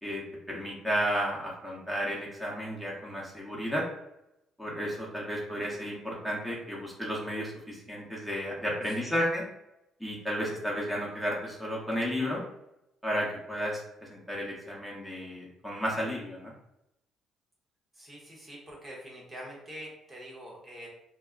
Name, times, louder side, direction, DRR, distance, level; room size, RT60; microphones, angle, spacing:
voice 1, 0.0-3.8 4.6-9.5 10.0-12.4 13.0-13.8 14.1-16.5, equal, 5° left, -5 dB, 0.9 m, -33 dB
voice 2, 18.0-20.9, equal, 25° right, -3 dB, 0.9 m, -45 dB
2.1 x 2.0 x 3.7 m, 0.85 s
supercardioid pair, 80°, 0 cm